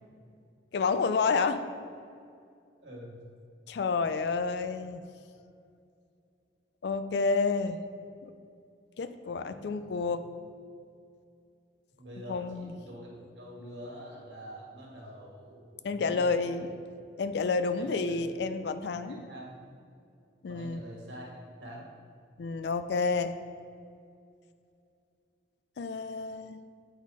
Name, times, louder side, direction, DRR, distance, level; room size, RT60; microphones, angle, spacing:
voice 1, 0.7-1.6 3.7-5.0 6.8-7.8 8.2-8.3 9.0-10.2 12.3-12.8 15.8-16.7 17.2-19.2 20.4-20.8 22.4-23.3 25.8-26.6, left 4 dB, 65° left, 10 dB, 0.4 m, -29 dB
voice 2, 2.8-3.2 9.5-9.9 12.0-16.7 17.8-18.2 18.9-19.5 20.5-21.3 21.6-21.9, equal, 80° right, -3 dB, 1.6 m, -46 dB
8.1 x 4.1 x 4.8 m, 2.4 s
head